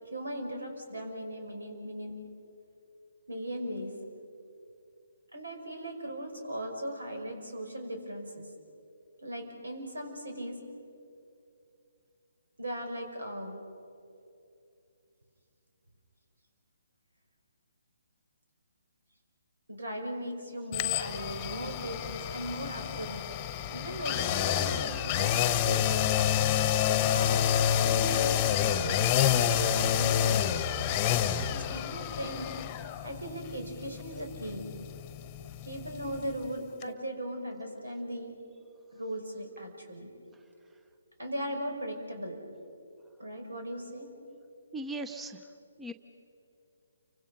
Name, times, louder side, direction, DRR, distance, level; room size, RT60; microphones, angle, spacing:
voice 1, 0.0-2.1 3.3-4.0 5.3-8.5 9.2-10.6 12.6-13.6 19.7-23.3 23.7-30.6 31.4-32.5 33.0-34.7 35.7-38.4 38.9-40.1 41.2-42.4 43.2-44.1, right 1 dB, 80° right, 3 dB, 5.5 m, -38 dB
sound 1, 20.7-36.5 36.8-36.9, left 10 dB, 25° left, 1.2 m, -28 dB
voice 2, 44.7-45.4 45.8-45.9, right 2 dB, 10° right, 8 dB, 0.8 m, -37 dB
29.5 x 25.0 x 5.6 m, 2.6 s
figure-of-eight pair, 140°, 0 cm